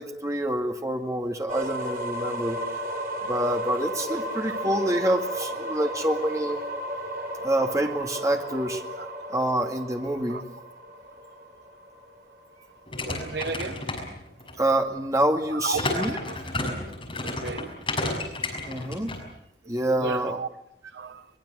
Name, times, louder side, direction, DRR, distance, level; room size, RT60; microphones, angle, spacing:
voice 1, 0.0-2.6 3.2-6.6 7.4-8.8 9.3-10.4 14.6-16.2 18.7-19.2 19.7-20.4, right 1 dB, 20° right, 2.2 m, -26 dB
sound 1, 1.5-13.3, equal, 50° right, 3.7 m, -34 dB
sound 2, 12.9-14.6 15.7-19.2, left 2 dB, 30° left, 6.3 m, -31 dB
voice 2, 13.0-13.9 15.5-16.4 16.7-16.8 17.2-17.8 19.9-20.5 20.9-21.3, right 3 dB, 70° right, 1.1 m, -34 dB
23.0 x 21.0 x 8.0 m
head